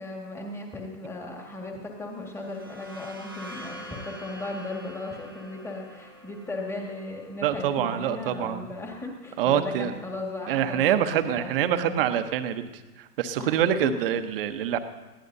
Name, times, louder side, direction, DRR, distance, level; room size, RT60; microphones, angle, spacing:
voice 1, 0.0-12.0 13.4-13.9, left 2 dB, 5° left, 1 dB, 1.8 m, -37 dB
sound 1, 2.2-9.8, equal, 15° right, 0.3 m, -46 dB
voice 2, 7.4-8.7 9.4-9.9 10.5-12.7 13.0-14.8, right 10 dB, 35° right, 9 dB, 1.0 m, -25 dB
20.5 x 16.0 x 2.7 m, 1.2 s
hypercardioid pair, 130°, 48 cm